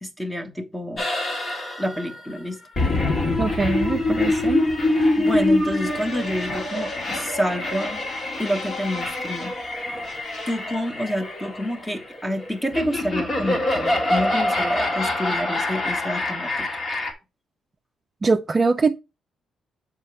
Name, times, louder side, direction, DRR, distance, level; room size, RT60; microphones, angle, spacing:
voice 1, 0.0-1.1 1.8-2.6 4.3-4.4 5.2-8.0 8.4-9.5 10.5-16.7, equal, 10° left, 1.3 m, -28 dB
sound 1, 1.0-17.1, left 2 dB, 45° left, 1.9 m, -25 dB
voice 2, 3.4-4.7 18.2-19.0, right 4 dB, 30° right, 0.4 m, -22 dB
7.2 x 4.9 x 3.3 m
cardioid pair, 90°, 0 cm